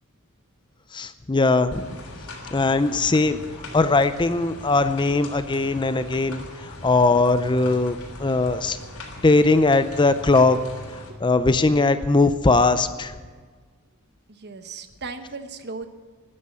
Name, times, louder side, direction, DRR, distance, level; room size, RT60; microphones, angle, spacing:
voice 1, 0.9-1.9 2.5-3.4 3.7-8.8 9.2-10.6 11.2-13.1, left 3 dB, 20° left, 12 dB, 0.5 m, -20 dB
sound 1, 1.7-11.1, left 2 dB, 80° left, 3.3 m, -40 dB
voice 2, 14.3-15.9, right 4 dB, 50° right, 9 dB, 1.1 m, -36 dB
13.0 x 9.7 x 9.7 m, 1.5 s
head